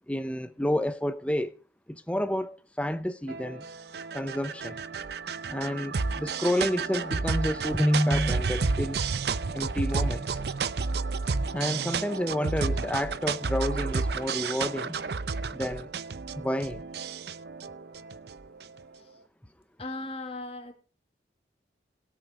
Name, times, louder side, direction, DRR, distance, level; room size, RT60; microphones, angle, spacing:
voice 1, 0.1-1.5 1.9-3.7 4.1-4.8 5.5-9.0 9.5-10.4 11.5-15.0 15.5-15.9 16.4-16.8, equal, 5° left, 0.7 m, -29 dB
sound 1, 3.3-18.8, right 4 dB, 65° right, 0.6 m, -31 dB
voice 2, 19.8-20.7, left 2 dB, 35° left, 1.9 m, -37 dB
18.0 x 7.7 x 4.8 m
head